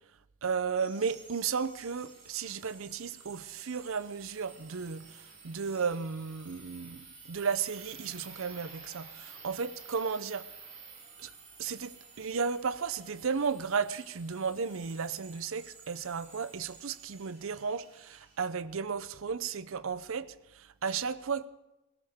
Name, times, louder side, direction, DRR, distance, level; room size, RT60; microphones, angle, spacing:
voice 1, 0.4-10.5 11.2-11.3 11.6-21.5, right 5 dB, 65° right, 0.6 m, -34 dB
sound 1, 0.8-18.4, right 5 dB, 30° right, 4.8 m, -52 dB
21.0 x 18.0 x 3.6 m
head